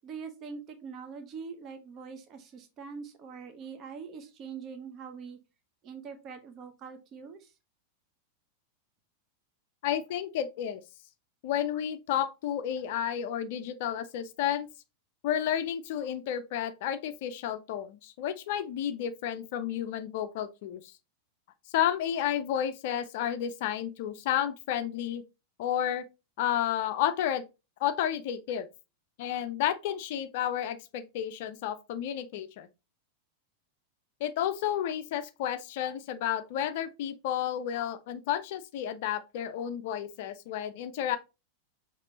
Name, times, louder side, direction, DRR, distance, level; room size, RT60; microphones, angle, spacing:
voice 1, 0.0-5.4 5.8-7.5, right 5 dB, 30° right, 0.9 m, -43 dB
voice 2, 9.8-10.8 11.4-14.7 15.2-20.8 21.7-25.2 25.6-26.0 26.4-27.4 27.8-28.7 29.2-32.7 34.2-41.2, left 10 dB, 50° left, 0.4 m, -31 dB
5.8 x 3.0 x 2.8 m
figure-of-eight pair, 90°, 0 cm